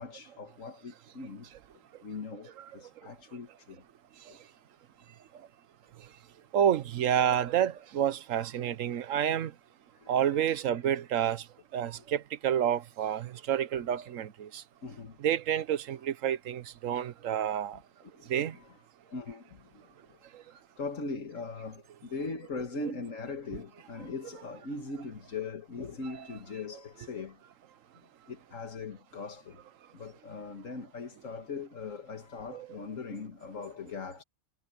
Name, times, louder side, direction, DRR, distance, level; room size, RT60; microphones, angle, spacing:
voice 1, 0.0-1.5 2.0-3.8 4.3-4.4 10.0-10.6 12.0-12.1 14.8-15.2 16.9-17.0 18.0-18.7 19.1-19.8 20.1-20.2 20.8-27.4 28.3-29.6 29.9-34.2, left 4 dB, 85° left, 2.1 m, -40 dB
voice 2, 6.5-9.5 10.1-11.4 11.7-14.6 15.2-17.8 18.3-18.5 32.5-32.7, right 9 dB, 90° right, 1.2 m, -29 dB
omnidirectional pair, 1.3 m